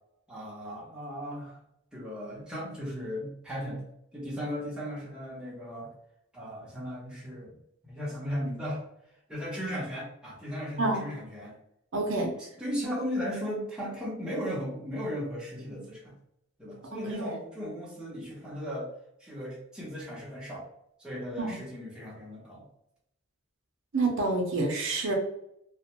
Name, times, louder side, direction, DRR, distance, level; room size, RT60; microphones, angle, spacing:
voice 1, 0.3-1.6 1.9-3.8 4.1-5.9 6.3-7.5 7.8-8.8 9.3-11.5 12.1-16.1 16.6-18.9 19.2-20.7 21.0-22.6, equal, 5° right, -5 dB, 0.7 m, -36 dB
voice 2, 11.9-12.3 16.9-17.3 21.4-21.5 23.9-25.1, right 2 dB, 65° right, 0 dB, 0.5 m, -28 dB
2.4 x 2.1 x 2.9 m, 0.78 s
head